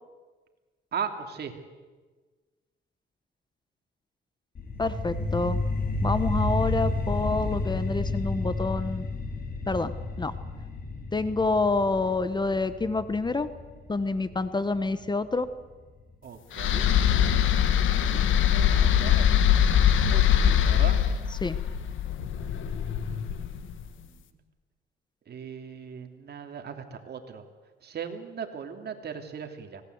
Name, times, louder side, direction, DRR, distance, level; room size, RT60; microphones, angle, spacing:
voice 1, 0.9-1.5 6.6-6.8 16.2-16.9 17.6-19.3 20.1-21.0 22.3-24.4 25.3-27.4 27.8-29.8, right 7 dB, 55° right, 5 dB, 3.0 m, -39 dB
sound 1, 4.6-15.6, left 2 dB, 50° left, 4.9 m, -31 dB
voice 2, 4.8-5.6 6.0-9.0 9.7-9.9 10.2-10.3 11.1-13.5 13.9-15.5 21.4-21.6, left 3 dB, 20° left, 13 dB, 1.2 m, -27 dB
sound 2, 16.5-23.7, left 9 dB, 80° left, 1.6 m, -23 dB
24.5 x 18.5 x 8.1 m, 1.3 s
cardioid pair, 90°, 20 cm